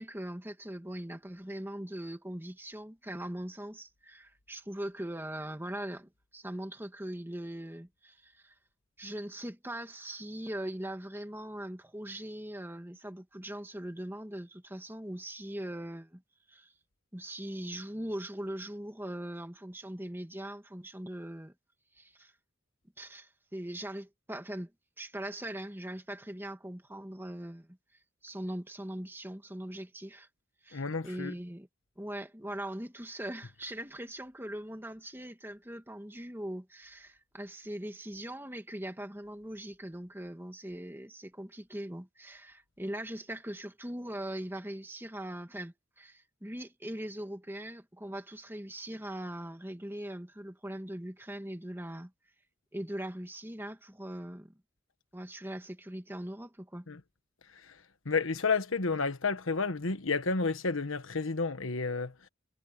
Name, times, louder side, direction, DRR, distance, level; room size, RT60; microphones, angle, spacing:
voice 1, 0.0-8.5 9.0-16.2 16.5-16.7 17.1-21.5 22.0-22.3 23.0-24.7 25.0-27.8 28.2-30.3 30.6-31.7 32.0-52.1 52.7-54.5 55.1-56.9, right 1 dB, 10° right, 2.1 m, -41 dB
voice 2, 30.7-31.3 56.9-57.0 57.5-62.3, left 4 dB, 80° left, 1.3 m, -31 dB
head